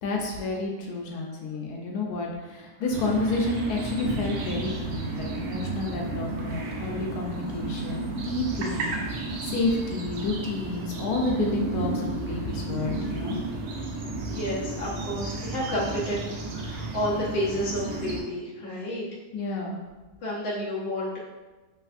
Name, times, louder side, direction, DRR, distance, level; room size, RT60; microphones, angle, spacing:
voice 1, 0.0-13.4 19.3-19.8, left 2 dB, 90° left, 0 dB, 1.1 m, -30 dB
sound 1, 2.9-18.2, right 3 dB, 85° right, 1.1 m, -33 dB
voice 2, 14.2-16.2 16.5-19.0 20.2-21.2, left 1 dB, 45° left, -7 dB, 1.0 m, -30 dB
3.4 x 3.2 x 2.4 m, 1.2 s
omnidirectional pair, 1.6 m